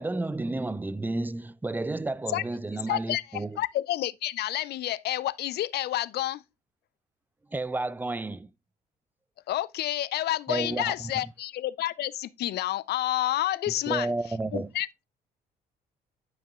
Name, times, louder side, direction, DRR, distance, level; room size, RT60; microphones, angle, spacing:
voice 1, 0.0-3.6 7.5-8.5 10.5-10.9 13.9-14.7, right 2 dB, 10° right, 0.5 m, -31 dB
voice 2, 2.9-6.4 9.5-14.1 14.5-15.0, left 14 dB, 50° left, 0.5 m, -29 dB
9.3 x 7.3 x 2.4 m
hypercardioid pair, 50°, 21 cm